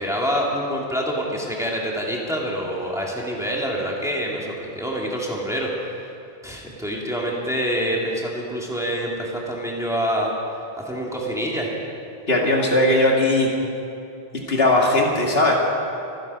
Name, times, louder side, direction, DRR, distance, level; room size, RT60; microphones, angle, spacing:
voice 1, 0.0-5.7 6.4-10.3 10.9-11.7, equal, 5° right, -3 dB, 2.3 m, -26 dB
voice 2, 12.3-13.5 14.5-15.6, left 1 dB, 70° left, -1 dB, 2.3 m, -18 dB
24.5 x 10.5 x 5.4 m, 2.7 s
omnidirectional pair, 1.0 m